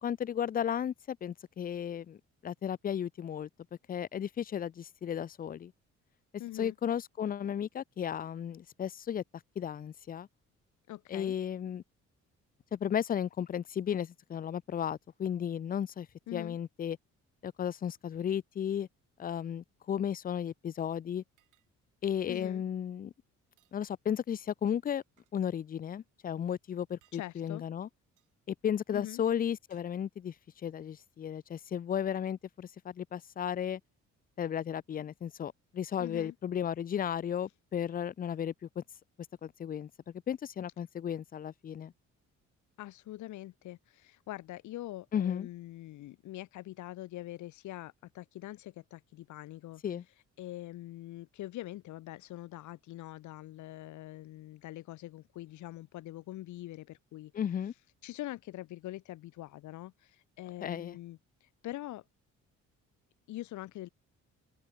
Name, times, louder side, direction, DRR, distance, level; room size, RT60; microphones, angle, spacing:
voice 1, 0.0-3.5 3.9-5.7 6.5-9.2 9.6-10.3 11.1-11.8 12.7-17.0 17.4-18.9 19.2-21.2 22.0-23.1 23.7-25.0 25.3-27.9 28.5-30.3 30.6-33.8 34.4-38.8 39.4-39.9 40.3-41.9 45.1-45.5 49.8-50.0 57.3-57.7 60.6-61.0, left 9 dB, 30° left, 0.4 m, -34 dB
voice 2, 6.4-6.7 10.9-11.3 16.3-16.6 22.3-22.6 27.1-27.6 28.9-29.2 36.0-36.3 42.8-49.8 50.4-57.3 58.0-62.0 63.3-63.9, left 15 dB, 75° left, 0.8 m, -44 dB
sound 1, 21.4-21.7 22.3-22.5 23.5-23.8 24.5-25.4 26.9-27.2 28.2-28.3 29.0-29.9, right 15 dB, 85° right, 3.4 m, -72 dB
cardioid pair, 90°, 30 cm